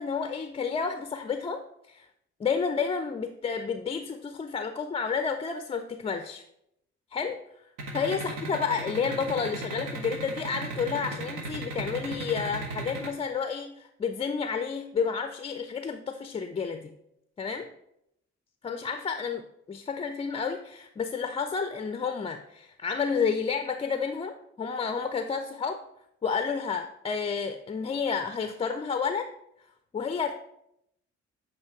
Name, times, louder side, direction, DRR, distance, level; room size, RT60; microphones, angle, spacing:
voice 1, 0.0-2.1 2.4-6.4 7.1-7.4 7.9-16.9 17.4-17.7 18.6-25.8 26.2-29.3 29.9-30.3, left 5 dB, 20° left, 8 dB, 0.4 m, -30 dB
sound 1, 7.8-13.1, right 3 dB, 75° right, 0.9 m, -35 dB
8.0 x 2.7 x 4.5 m, 0.78 s
figure-of-eight pair, 40°, 33 cm